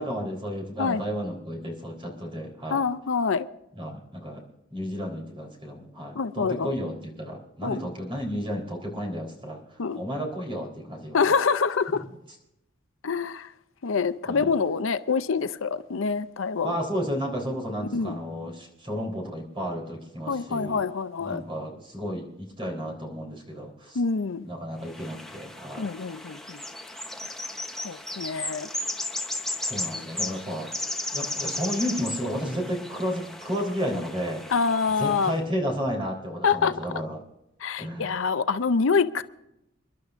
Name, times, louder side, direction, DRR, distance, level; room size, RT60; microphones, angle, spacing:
voice 1, 0.0-2.8 3.8-4.4 4.7-9.6 9.9-11.2 14.2-14.5 16.6-20.8 21.2-24.0 24.4-25.9 29.7-30.7 31.1-34.4 35.0-37.2 37.8-38.1, equal, 25° right, 3.8 m, -32 dB
voice 2, 2.7-3.5 6.2-6.7 7.6-7.8 9.8-10.0 11.1-12.0 13.0-13.5 13.8-16.8 17.9-18.2 20.3-21.4 23.9-24.5 25.8-26.6 27.8-28.7 29.9-30.0 34.5-35.3 36.4-36.7 37.6-39.2, left 5 dB, 80° left, 0.6 m, -26 dB
sound 1, 24.8-35.4, left 2 dB, ahead, 0.9 m, -35 dB
29.0 x 11.5 x 2.5 m
head